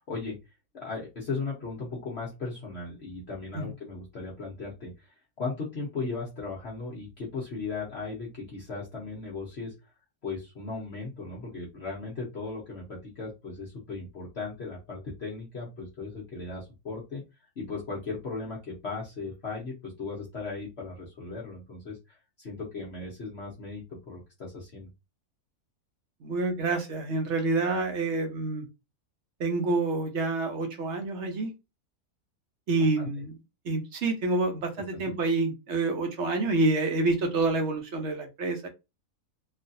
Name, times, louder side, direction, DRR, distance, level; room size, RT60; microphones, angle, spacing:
voice 1, 0.7-5.1 5.4-9.7 10.2-17.2 17.6-24.9 33.0-33.1 34.9-35.0, left 3 dB, 50° left, 1.1 m, -37 dB
voice 2, 26.2-28.6 29.4-31.5 32.7-33.3 33.7-38.7, right 3 dB, 55° right, 0.9 m, -27 dB
3.2 x 2.4 x 2.7 m
omnidirectional pair, 1.6 m